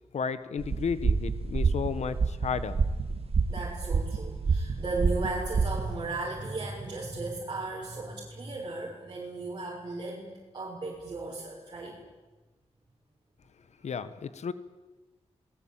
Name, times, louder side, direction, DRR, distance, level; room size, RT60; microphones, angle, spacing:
voice 1, 0.1-2.8 13.8-14.5, left 6 dB, 80° left, 14 dB, 1.5 m, -33 dB
sound 1, 0.6-6.0, right 4 dB, 60° right, 2.2 m, -28 dB
voice 2, 3.5-12.0, right 2 dB, 40° right, -4 dB, 6.4 m, -36 dB
27.5 x 20.0 x 9.1 m, 1.2 s
wide cardioid pair, 115°, 11 cm